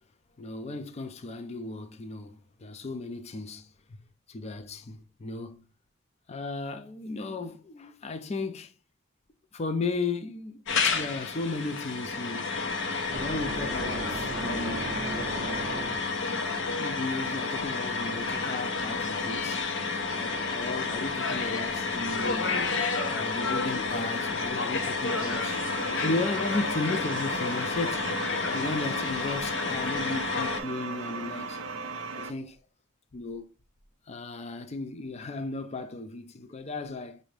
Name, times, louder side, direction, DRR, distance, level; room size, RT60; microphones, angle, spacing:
voice 1, 0.4-4.0 4.3-5.6 6.3-8.7 9.5-10.6 10.9-12.6 13.1-15.7 16.8-19.7 20.1-22.6 23.1-25.6 26.0-28.2 28.5-31.6 32.1-32.6 33.1-33.5 34.1-37.2, left 3 dB, 35° left, 0.4 m, -35 dB
sound 1, 10.7-30.6, left 4 dB, 65° left, 0.7 m, -30 dB
sound 2, 13.1-16.3, right 3 dB, 40° right, 0.5 m, -37 dB
sound 3, 25.0-32.3, right 4 dB, 85° right, 0.7 m, -37 dB
6.0 x 2.7 x 3.2 m
head